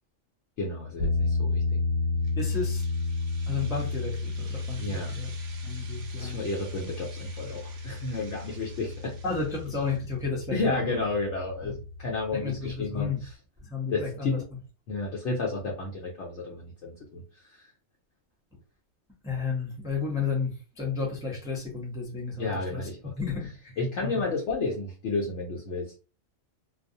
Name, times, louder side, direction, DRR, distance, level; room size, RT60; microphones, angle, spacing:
voice 1, 0.6-1.6 4.8-5.1 6.1-9.2 10.5-13.1 13.9-14.4 14.9-17.2 17.5-17.7 22.4-23.0 23.8-25.9, left 3 dB, 65° left, -2 dB, 0.8 m, -31 dB
sound 1, 1.0-13.3, left 3 dB, 90° left, 1.0 m, -32 dB
sound 2, 2.2-10.1, right 4 dB, 50° right, 0.5 m, -51 dB
voice 2, 2.4-2.8 3.5-5.3 5.6-6.4 9.2-11.0 11.6-11.7 12.3-13.2 13.6-14.4 19.2-22.9 23.2-23.7 24.0-24.2, left 5 dB, 5° right, -2 dB, 0.4 m, -32 dB
2.4 x 2.0 x 2.6 m, 0.34 s
omnidirectional pair, 1.4 m